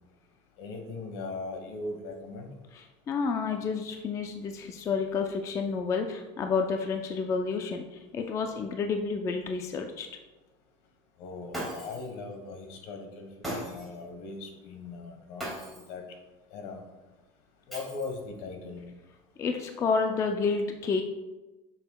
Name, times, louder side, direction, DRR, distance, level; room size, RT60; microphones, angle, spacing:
voice 1, 0.6-2.5 11.2-16.0 16.5-16.8 17.7-18.9, left 3 dB, 70° left, 4 dB, 1.3 m, -39 dB
voice 2, 2.7-10.1 19.4-21.0, left 5 dB, 20° left, 5 dB, 0.3 m, -30 dB
Shatter, 11.5-12.1 13.4-14.0 15.4-16.0 17.7-18.4, equal, ahead, 2.2 m, -38 dB
7.7 x 6.3 x 2.3 m, 1.1 s
cardioid pair, 170°, 15 cm